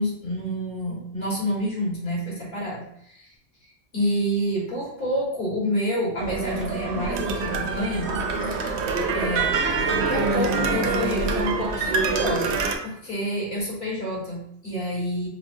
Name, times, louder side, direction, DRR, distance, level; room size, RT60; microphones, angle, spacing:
voice 1, 0.0-3.3 3.9-8.2 8.4-8.7 9.1-9.5 9.8-12.5 12.8-15.3, equal, 40° left, -5 dB, 1.6 m, -28 dB
sound 1, 6.2-12.8, right 4 dB, 70° right, 0.8 m, -25 dB
5.0 x 2.0 x 2.6 m, 0.70 s
omnidirectional pair, 1.3 m